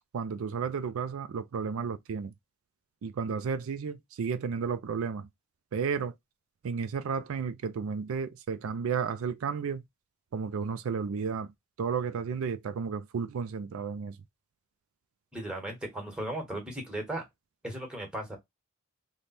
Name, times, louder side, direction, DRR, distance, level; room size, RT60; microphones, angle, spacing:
voice 1, 0.1-2.3 3.0-5.3 5.7-6.1 6.6-9.8 10.3-11.5 11.8-14.2, right 6 dB, 75° right, 0.4 m, -32 dB
voice 2, 15.3-17.2 17.6-18.4, right 1 dB, 5° right, 1.2 m, -36 dB
3.3 x 2.2 x 4.1 m
head